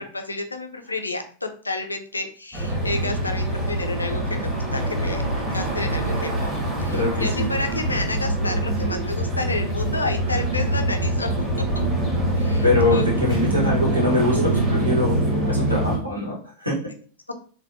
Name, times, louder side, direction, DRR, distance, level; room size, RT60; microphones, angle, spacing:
voice 1, 0.0-5.2 5.5-6.5 6.8-11.5 12.4-13.4 17.3-17.4, left 2 dB, 80° left, 6 dB, 0.4 m, -30 dB
sound 1, 2.5-16.0, right 1 dB, 15° right, 1.2 m, -24 dB
voice 2, 6.9-7.5 12.6-15.2 15.5-16.8, left 2 dB, 85° right, -4 dB, 1.1 m, -23 dB
3.3 x 2.2 x 2.6 m, 0.42 s
figure-of-eight pair, 90°, 0 cm